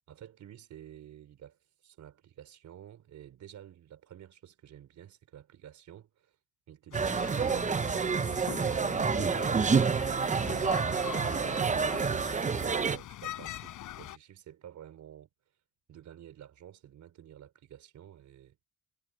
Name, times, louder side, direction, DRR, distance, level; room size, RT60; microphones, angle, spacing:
voice 1, 0.0-6.4 6.7-15.3 15.9-18.6, right 10 dB, 70° right, 4.1 m, -51 dB
sound 1, 6.9-14.2, left 14 dB, 85° left, 4.9 m, -43 dB
sound 2, 6.9-13.0, right 5 dB, 25° right, 0.7 m, -28 dB
cardioid pair, 90°, 30 cm